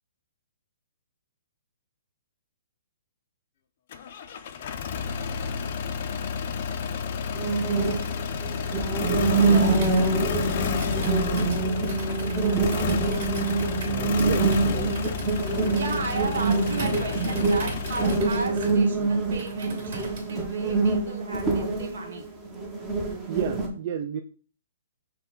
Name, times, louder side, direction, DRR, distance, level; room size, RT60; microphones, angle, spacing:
sound 1, 3.9-18.2, left 7 dB, 45° left, 0.5 m, -31 dB
sound 2, 7.3-23.7, right 3 dB, 10° right, 0.7 m, -25 dB
voice 1, 9.4-9.9 11.5-11.6 15.7-22.2, right 3 dB, 70° right, 1.3 m, -35 dB
Computer keyboard, 9.7-20.4, right 3 dB, 55° right, 2.0 m, -40 dB
voice 2, 13.8-15.0 15.3-15.4 19.0-19.2 23.3-24.2, right 8 dB, 35° right, 0.3 m, -32 dB
5.8 x 2.2 x 3.8 m
hypercardioid pair, 160°, 0 cm